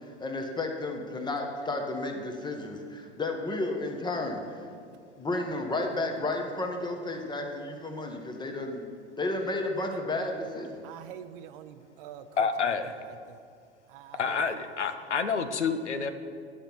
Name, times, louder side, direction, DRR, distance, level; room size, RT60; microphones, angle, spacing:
voice 1, 0.0-4.4 5.2-8.9 9.2-10.9, left 2 dB, 15° left, 3 dB, 1.2 m, -32 dB
voice 2, 10.8-13.4 13.9-14.7, right 10 dB, 50° right, 11 dB, 0.6 m, -47 dB
voice 3, 12.4-12.9 14.2-16.1, left 5 dB, 90° left, 10 dB, 0.6 m, -28 dB
10.0 x 5.5 x 6.0 m, 2.3 s
figure-of-eight pair, 85°, 34 cm